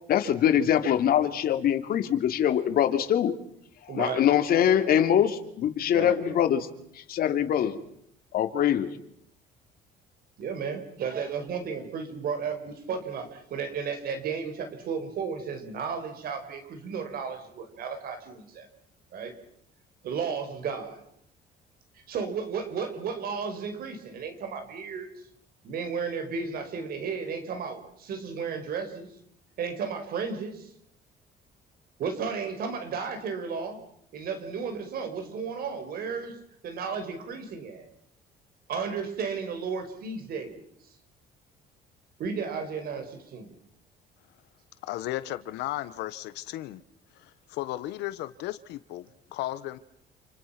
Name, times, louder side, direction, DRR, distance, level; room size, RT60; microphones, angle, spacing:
voice 1, 0.1-3.3 3.9-6.7 7.1-7.8 8.3-8.9, left 10 dB, 60° left, 2.9 m, -23 dB
voice 2, 3.9-4.3 5.9-6.4 10.4-18.7 19.1-19.3 20.0-21.0 22.1-25.1 25.6-29.1 29.6-30.7 32.0-33.8 34.1-37.9 38.7-40.7 42.2-43.5, right 6 dB, 65° right, 5.5 m, -33 dB
voice 3, 44.8-46.8 47.2-49.8, left 15 dB, 85° left, 1.2 m, -35 dB
29.0 x 28.5 x 6.0 m
cardioid pair, 110°, 17 cm